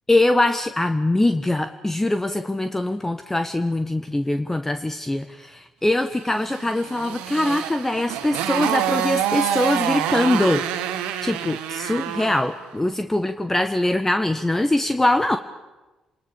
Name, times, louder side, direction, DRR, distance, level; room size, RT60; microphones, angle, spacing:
voice 1, 0.1-10.6 11.2-15.4, left 1 dB, 15° left, 9 dB, 1.3 m, -22 dB
Motorcycle, 6.5-12.5, right 10 dB, 80° right, 1.5 m, -26 dB
29.5 x 20.5 x 7.1 m, 1.1 s
hypercardioid pair, 45°, 2 cm